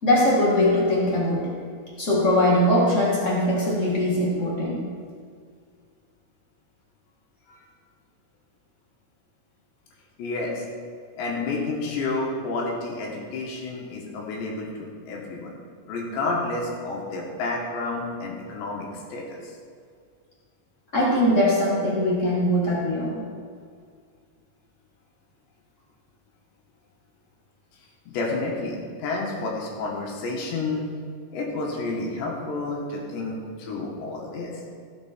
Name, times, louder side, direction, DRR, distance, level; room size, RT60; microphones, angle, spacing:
voice 1, 0.0-1.5 2.0-4.8 20.9-23.2, left 1 dB, 60° left, -5 dB, 0.7 m, -21 dB
voice 2, 10.2-10.7 11.2-15.6 15.9-19.5 28.1-30.9 31.3-34.5, left 3 dB, 80° left, -2 dB, 4.0 m, -30 dB
16.5 x 7.9 x 4.5 m, 2.1 s
omnidirectional pair, 5.0 m